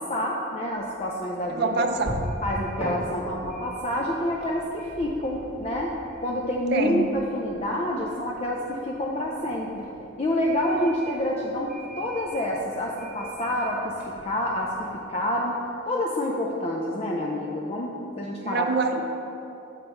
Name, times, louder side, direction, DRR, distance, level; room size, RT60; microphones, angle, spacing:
voice 1, 0.0-1.9 2.4-5.9 6.2-9.8 10.2-13.9 14.2-15.6 15.9-17.9 18.2-18.7, left 1 dB, 30° left, -2 dB, 0.4 m, -28 dB
sound 1, 0.8-15.2, equal, 5° right, 1.3 m, -41 dB
voice 2, 1.5-2.3 6.7-7.2 18.4-19.1, right 3 dB, 50° right, 5 dB, 0.4 m, -26 dB
7.4 x 5.3 x 4.4 m, 3.0 s
head